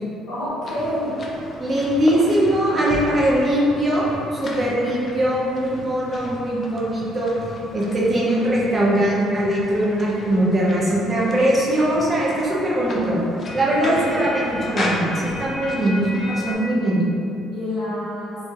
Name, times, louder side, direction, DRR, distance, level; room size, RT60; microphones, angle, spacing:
voice 1, 0.3-1.1 1.5-1.6 13.8-14.2 17.5-18.4, left 1 dB, 65° left, -8 dB, 0.8 m, -28 dB
sound 1, 0.6-16.6, left 1 dB, 35° left, 0.3 m, -34 dB
voice 2, 1.6-7.3 7.7-13.2 13.5-17.0, right 1 dB, 25° right, -6 dB, 0.5 m, -21 dB
2.3 x 2.0 x 2.8 m, 2.7 s
cardioid pair, 110°, 0 cm